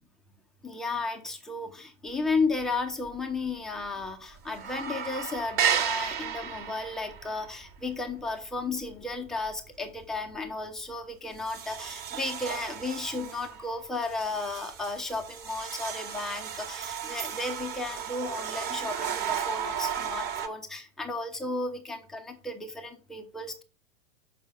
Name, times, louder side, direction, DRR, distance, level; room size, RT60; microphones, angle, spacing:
voice 1, 0.6-23.6, left 3 dB, ahead, 3 dB, 0.3 m, -34 dB
sound 1, 2.3-2.8 3.1-3.2 3.5-4.1 4.4-9.6 10.0-10.3 10.8-10.9 11.3-20.5, right 8 dB, 25° right, 1.0 m, -34 dB
6.3 x 4.6 x 5.6 m, 0.35 s
figure-of-eight pair, 105°, 39 cm